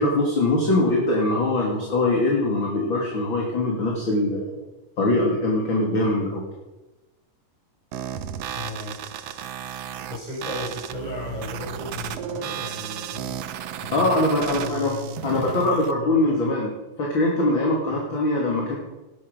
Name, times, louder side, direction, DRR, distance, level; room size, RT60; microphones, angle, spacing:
voice 1, 0.0-4.6 5.0-6.5 13.9-14.9 15.2-16.7 17.0-18.8, left 2 dB, 35° left, -2 dB, 3.3 m, -22 dB
sound 1, 7.9-15.9, right 9 dB, 70° right, 1.5 m, -34 dB
voice 2, 8.5-9.0 10.1-13.4 13.8-16.5 17.9-18.0, left 2 dB, 10° left, -4 dB, 6.9 m, -35 dB
19.5 x 12.0 x 5.4 m, 1.0 s
omnidirectional pair, 3.9 m